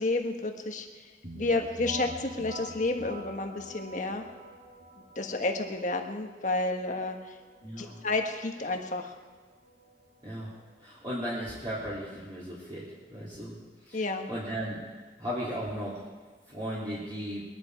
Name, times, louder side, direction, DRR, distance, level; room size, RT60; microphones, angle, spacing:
voice 1, 0.0-4.2 5.1-7.4 7.8-9.1 13.9-14.3, left 2 dB, 45° left, 4 dB, 1.4 m, -31 dB
sound 1, 1.2-10.8, right 1 dB, 50° right, 5.0 m, -46 dB
voice 2, 7.6-7.9 10.2-10.5 10.8-13.6 13.8-14.0 14.3-14.8 15.2-16.0 16.5-17.4, equal, 25° right, -9 dB, 3.2 m, -36 dB
22.0 x 11.0 x 4.8 m, 1.4 s
head